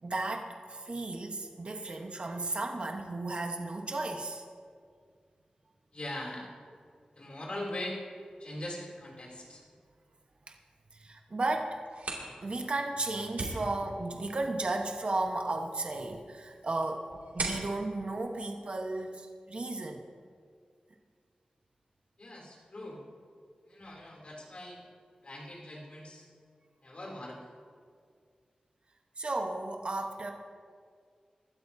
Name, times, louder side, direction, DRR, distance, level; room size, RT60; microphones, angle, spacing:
voice 1, 0.0-4.4 10.5-10.6 10.9-11.8 12.4-20.1 29.2-30.3, right 2 dB, 50° right, 3 dB, 1.1 m, -34 dB
voice 2, 5.9-6.5 7.2-8.0 8.4-9.6 22.2-23.0 23.7-24.8 25.2-26.2 26.8-27.4, left 1 dB, 50° left, -2 dB, 3.0 m, -41 dB
sound 1, 11.7-19.3, right 2 dB, 90° right, 2.5 m, -43 dB
24.0 x 12.0 x 2.7 m, 2.1 s
wide cardioid pair, 95°, 2 cm